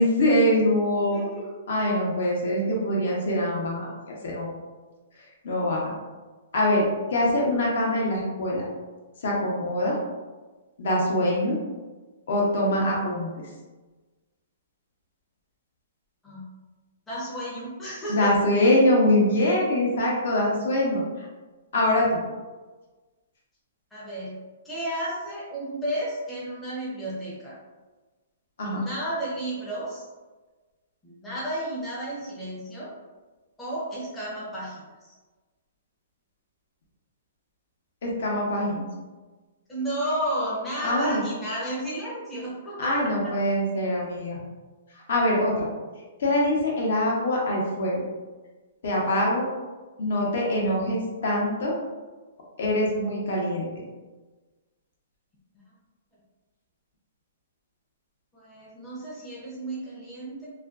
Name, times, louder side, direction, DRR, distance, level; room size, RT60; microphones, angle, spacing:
voice 1, 0.0-1.2 1.7-4.5 5.4-5.9 6.5-8.6 9.2-10.0 10.8-11.6 12.3-13.3 18.1-21.3 21.7-22.0 28.6-28.8 38.0-38.9 40.8-41.2 42.8-44.4 45.1-45.7 46.2-48.0 48.8-49.5 50.0-51.7 52.6-53.7, left 1 dB, 60° left, -3 dB, 0.7 m, -24 dB
voice 2, 1.1-1.4 16.2-16.4 17.1-18.3 23.9-24.4 24.6-27.6 28.7-30.0 31.0-32.9 33.6-35.1 39.7-43.1 58.3-60.5, right 1 dB, 5° left, -9 dB, 0.5 m, -32 dB
2.4 x 2.2 x 2.3 m, 1.3 s
hypercardioid pair, 170°, 0 cm